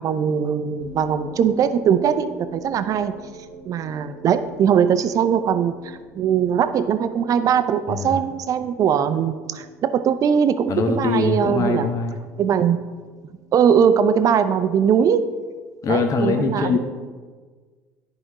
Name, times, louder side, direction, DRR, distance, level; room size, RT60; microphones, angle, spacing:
voice 1, 0.0-3.1 3.7-11.9 12.4-12.8 13.5-15.2 15.9-16.7, right 8 dB, 45° right, 11 dB, 0.5 m, -20 dB
sound 1, 0.8-15.7, right 1 dB, 90° right, 1.1 m, -45 dB
voice 2, 10.7-12.2 15.8-16.8, left 4 dB, 45° left, 6 dB, 0.9 m, -22 dB
10.5 x 4.9 x 3.0 m, 1.5 s
hypercardioid pair, 70°, 8 cm